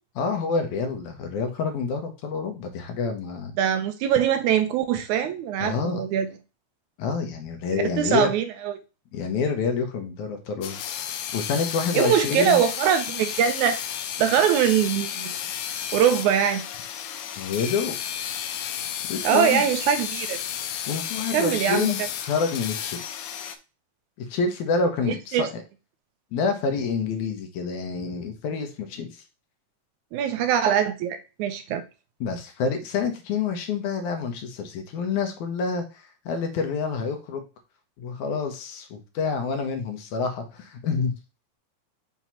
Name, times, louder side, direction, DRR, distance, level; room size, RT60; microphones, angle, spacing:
voice 1, 0.2-3.5 5.6-6.1 7.0-8.3 9.1-10.8 11.1-12.6 17.4-18.0 19.1-19.6 20.9-23.2 24.2-25.5 26.3-29.2 32.2-37.4 38.0-41.1, left 5 dB, 70° left, 5 dB, 2.2 m, -28 dB
voice 2, 3.6-6.3 7.7-8.7 11.9-13.8 14.2-15.4 15.9-16.6 19.2-20.4 21.3-21.9 25.1-25.5 30.1-31.8, right 9 dB, 80° right, 9 dB, 1.8 m, -22 dB
sound 1, 10.6-23.6, left 9 dB, 90° left, 2.4 m, -32 dB
6.1 x 2.9 x 5.6 m, 0.31 s
omnidirectional pair, 3.8 m